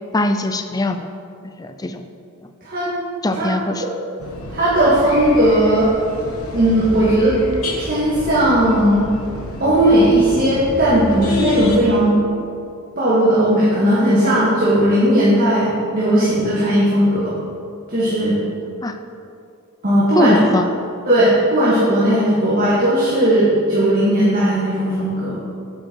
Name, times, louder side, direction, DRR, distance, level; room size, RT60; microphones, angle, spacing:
voice 1, 0.1-1.1 1.6-2.0 3.2-3.8 18.8-19.0 20.2-20.6, left 2 dB, 15° left, 8 dB, 0.4 m, -21 dB
voice 2, 2.6-2.9 3.3-3.5 4.5-5.9 6.5-7.4 7.8-9.1 9.6-12.2 13.0-17.3 17.9-18.4 19.8-20.4 21.1-25.4, right 1 dB, 40° right, -10 dB, 1.8 m, -16 dB
sound 1, 4.2-11.8, left 3 dB, 85° left, 1.3 m, -29 dB
9.0 x 7.7 x 4.6 m, 2.5 s
head